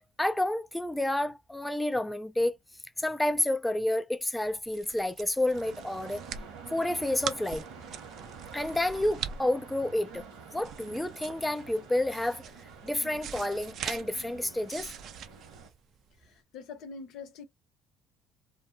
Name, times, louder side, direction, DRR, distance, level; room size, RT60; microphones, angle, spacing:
voice 1, 0.0-2.6 3.0-6.2 6.7-7.6 8.5-10.2 10.5-12.4 12.8-14.9, left 1 dB, 10° left, 0.3 m, -30 dB
sound 1, 4.4-16.3, right 8 dB, 60° right, 0.4 m, -43 dB
sound 2, 5.5-15.7, right 5 dB, 85° right, 1.2 m, -48 dB
voice 2, 16.2-17.4, left 5 dB, 70° left, 0.7 m, -44 dB
2.6 x 2.0 x 2.5 m
supercardioid pair, 85°, 0 cm